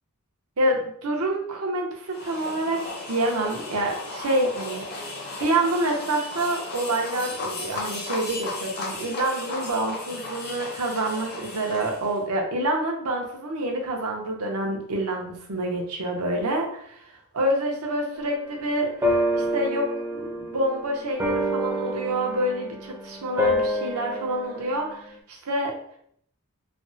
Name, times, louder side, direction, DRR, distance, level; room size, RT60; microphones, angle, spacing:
voice 1, 0.6-2.8 3.1-4.8 5.4-17.0 17.3-19.1 19.3-25.0 25.3-25.8, right 1 dB, 85° right, 1 dB, 0.7 m, -27 dB
sound 1, 2.1-12.2, left 3 dB, 45° left, 0.7 m, -35 dB
sound 2, 18.2-18.3 19.0-25.2, equal, 10° right, 0.5 m, -28 dB
3.3 x 2.0 x 2.7 m, 0.65 s
head